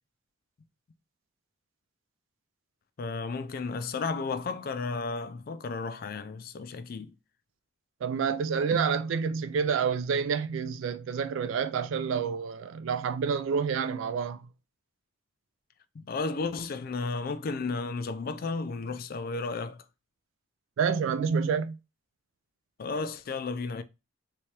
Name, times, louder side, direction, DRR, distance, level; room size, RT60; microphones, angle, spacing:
voice 1, 3.0-7.1 15.9-19.9 22.8-23.8, left 4 dB, 45° left, 0.3 m, -33 dB
voice 2, 8.0-14.5 20.8-21.7, right 6 dB, 70° right, 0.3 m, -28 dB
3.4 x 3.2 x 2.8 m
head